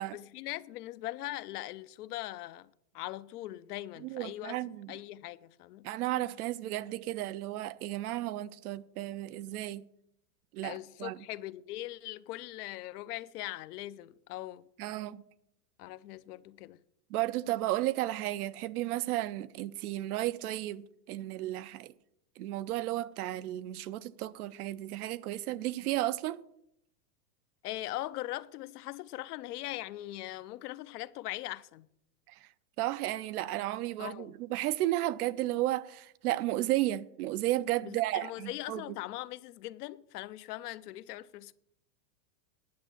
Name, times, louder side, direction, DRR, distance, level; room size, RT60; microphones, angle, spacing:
voice 1, 0.1-2.7 2.9-4.6 4.9-5.9 10.6-14.7 15.8-16.8 27.6-31.9 34.0-34.4 37.8-41.5, left 16 dB, 70° left, 0.7 m, -40 dB
voice 2, 4.0-4.9 5.8-9.8 10.5-11.2 14.8-15.2 17.1-21.9 22.4-26.4 32.3-32.5 32.8-38.8, right 15 dB, 65° right, 0.6 m, -33 dB
10.5 x 6.0 x 7.3 m
supercardioid pair, 130°, 48 cm